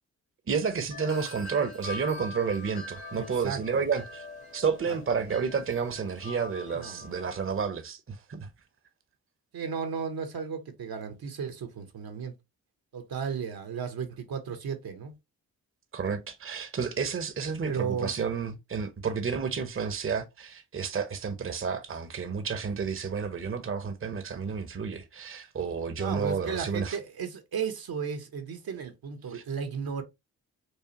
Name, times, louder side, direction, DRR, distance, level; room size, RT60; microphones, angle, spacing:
voice 1, 0.5-4.2 4.5-8.5 15.9-27.0 29.3-29.4, right 6 dB, 35° right, 0.8 m, -31 dB
Wind chime, 0.9-7.6, left 2 dB, 70° left, 1.1 m, -43 dB
voice 2, 3.1-3.8 4.9-5.4 6.7-7.1 9.5-12.3 12.9-15.1 17.6-18.1 26.0-30.0, right 6 dB, 70° right, 1.0 m, -35 dB
4.7 x 2.4 x 2.8 m
supercardioid pair, 45°, 38 cm